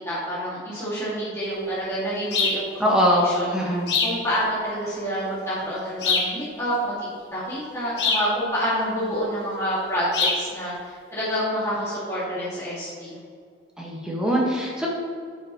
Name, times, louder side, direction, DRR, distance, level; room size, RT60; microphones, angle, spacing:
voice 1, 0.0-3.4 4.0-13.2, equal, 15° left, -11 dB, 2.0 m, -28 dB
sound 1, 2.3-2.6 3.9-4.2 6.0-6.4 8.0-8.3 10.1-10.4, left 4 dB, 70° left, 1.2 m, -23 dB
voice 2, 2.8-3.9 13.8-14.9, equal, 5° right, -4 dB, 1.4 m, -22 dB
10.5 x 5.6 x 3.0 m, 2.2 s
head